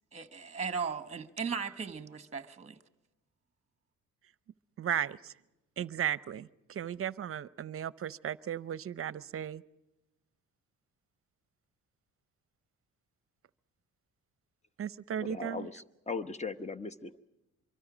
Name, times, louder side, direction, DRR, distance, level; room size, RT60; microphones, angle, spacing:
voice 1, 0.1-2.8, right 5 dB, 20° right, 1.2 m, -37 dB
voice 2, 4.8-5.3 5.8-9.6 14.8-15.7, right 9 dB, 45° right, 0.6 m, -35 dB
voice 3, 15.2-17.2, left 4 dB, 20° left, 1.0 m, -39 dB
25.0 x 23.5 x 5.0 m
cardioid pair, 90°, 30 cm